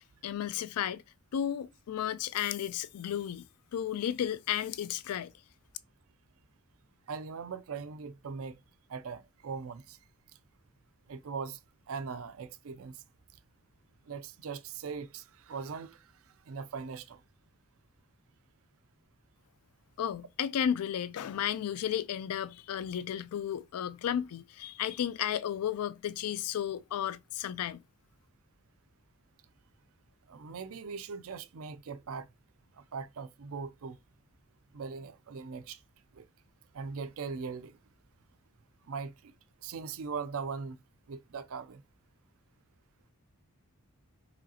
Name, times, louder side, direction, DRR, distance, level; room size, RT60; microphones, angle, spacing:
voice 1, 0.2-1.0 1.3-3.5 3.7-5.3 20.0-27.8, left 9 dB, 75° left, 0.3 m, -33 dB
voice 2, 7.1-8.6 8.9-10.0 11.1-11.6 11.9-13.0 14.1-16.1 16.5-17.2 30.3-32.3 32.8-34.0 34.7-35.8 36.1-36.2 36.7-37.7 38.9-39.3 39.6-40.8 41.1-41.8, right 5 dB, 65° right, 0.4 m, -40 dB
4.9 x 3.0 x 2.8 m
head